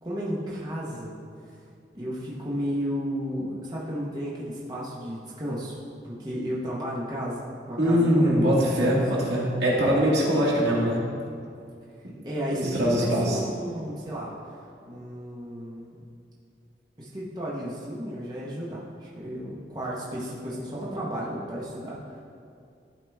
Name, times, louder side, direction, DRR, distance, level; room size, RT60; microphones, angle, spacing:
voice 1, 0.0-1.1 1.5-1.6 1.9-5.8 6.0-8.4 8.8-9.0 12.2-14.3 14.9-15.9 17.0-22.2, equal, 25° right, -7 dB, 1.1 m, -33 dB
voice 2, 7.8-11.0 12.5-13.4, equal, 75° right, -5 dB, 1.9 m, -22 dB
12.0 x 4.9 x 3.5 m, 2.4 s
head